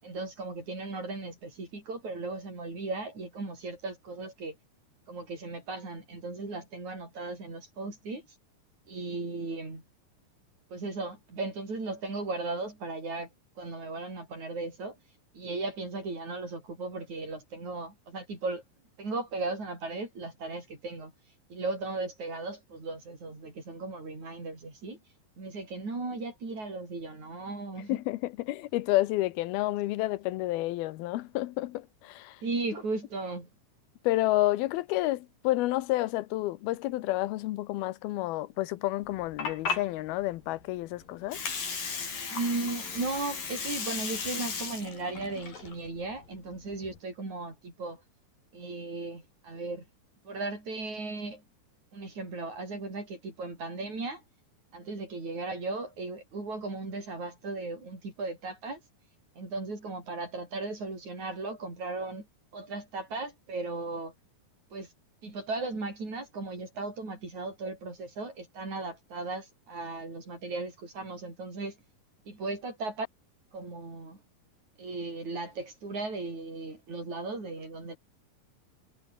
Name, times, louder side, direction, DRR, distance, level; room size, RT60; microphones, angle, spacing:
voice 1, 0.0-4.6 5.1-8.3 8.9-9.8 10.7-13.3 13.6-15.0 15.3-18.6 19.0-21.1 21.5-25.0 25.4-28.0 32.4-33.5 42.3-48.0 48.5-49.9 50.2-51.4 51.9-54.2 54.7-58.8 59.4-62.3 62.5-64.1 64.7-64.9 65.2-71.8 72.3-73.1 73.5-74.2 74.8-78.0, right 3 dB, 50° right, 9.2 m, -36 dB
voice 2, 27.9-32.4 34.0-41.4, left 17 dB, 85° left, 2.8 m, -30 dB
Water, 39.0-47.0, left 5 dB, 65° left, 6.8 m, -36 dB
omnidirectional pair, 4.3 m